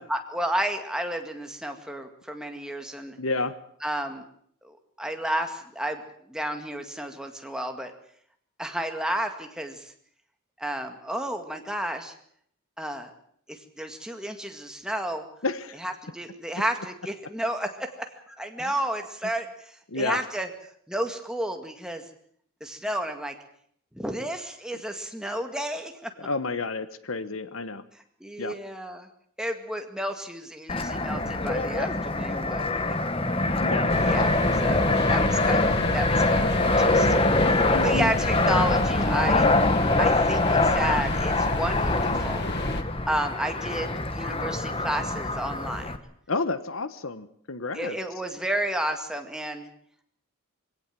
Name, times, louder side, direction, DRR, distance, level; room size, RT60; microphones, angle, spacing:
voice 1, 0.1-3.2 3.8-4.2 4.6-7.9 8.6-9.9 10.6-12.1 12.8-13.1 13.5-15.2 15.8-20.5 20.9-22.0 22.6-23.3 23.9-26.3 28.2-29.1 29.4-33.2 33.9-37.4 37.8-39.5 40.0-42.4 43.1-45.9 47.7-49.7, right 1 dB, 5° right, 4 dB, 2.0 m, -32 dB
voice 2, 3.2-3.5 15.4-15.7 19.9-20.2 26.2-27.8 28.4-28.5 33.6-33.9 37.7-38.1 46.3-48.0, left 3 dB, 70° left, 13 dB, 1.2 m, -30 dB
Fixed-wing aircraft airplane, 30.7-46.0, left 2 dB, 25° left, 1.3 m, -24 dB
sound 1, 33.9-42.8, left 1 dB, 50° left, 1.7 m, -31 dB
22.5 x 17.0 x 7.7 m, 0.64 s
head